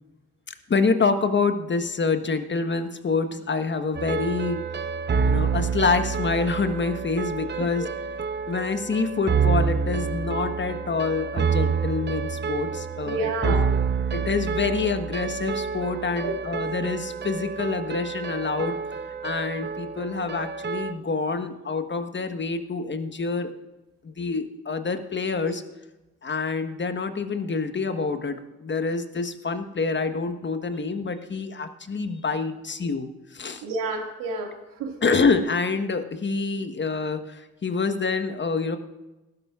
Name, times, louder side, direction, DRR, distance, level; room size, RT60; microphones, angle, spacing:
voice 1, 0.7-4.6 5.2-7.9 8.5-13.6 14.1-18.8 19.2-23.5 24.0-25.6 26.2-33.6 35.0-38.8, left 4 dB, 30° left, 9 dB, 1.3 m, -27 dB
sound 1, 3.9-20.9, right 5 dB, 30° right, 0.9 m, -28 dB
voice 2, 13.0-13.7 16.2-16.4 33.6-35.0, right 2 dB, 70° right, 2 dB, 2.3 m, -30 dB
18.5 x 10.5 x 2.5 m, 1.0 s
hypercardioid pair, 45°, 35 cm